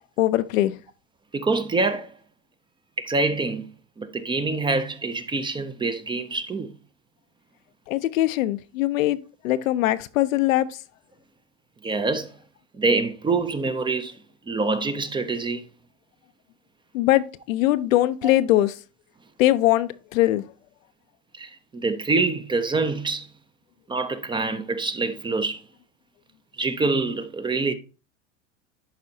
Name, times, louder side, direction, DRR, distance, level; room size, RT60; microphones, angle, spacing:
voice 1, 0.2-0.8 7.9-9.2 9.4-10.7 16.9-18.7 19.4-20.4, left 15 dB, 90° left, 0.6 m, -21 dB
voice 2, 1.3-2.1 3.0-3.7 4.0-6.7 11.8-12.4 12.8-14.2 14.5-15.6 21.3-23.3 23.9-25.6 26.6-27.7, right 3 dB, 15° right, 0.5 m, -25 dB
11.0 x 4.2 x 2.7 m
supercardioid pair, 120°, 39 cm